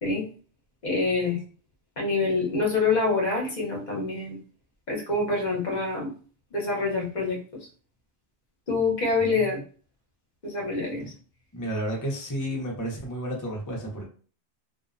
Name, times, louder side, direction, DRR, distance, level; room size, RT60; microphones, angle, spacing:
voice 1, 0.8-1.4 2.0-4.4 4.9-6.1 6.5-7.4 8.7-9.6 10.4-11.0, left 3 dB, 45° left, -2 dB, 0.8 m, -26 dB
voice 2, 11.5-14.1, right 1 dB, 25° left, -1 dB, 0.4 m, -31 dB
2.6 x 2.0 x 2.4 m, 0.41 s
omnidirectional pair, 1.1 m